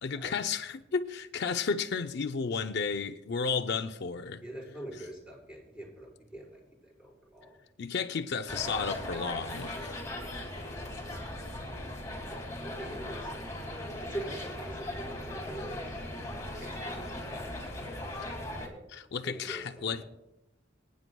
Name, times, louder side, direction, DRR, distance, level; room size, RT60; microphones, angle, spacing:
voice 1, 0.0-4.4 7.8-10.0 18.9-20.0, left 5 dB, 60° left, 0.5 m, -33 dB
voice 2, 4.4-7.6 8.5-9.0 9.3-10.3 12.3-13.6 14.0-16.0 16.5-17.5 19.2-20.0, right 1 dB, 5° right, 4.6 m, -44 dB
sound 1, 8.5-18.7, left 1 dB, 15° left, 2.4 m, -38 dB
25.0 x 9.4 x 2.3 m
head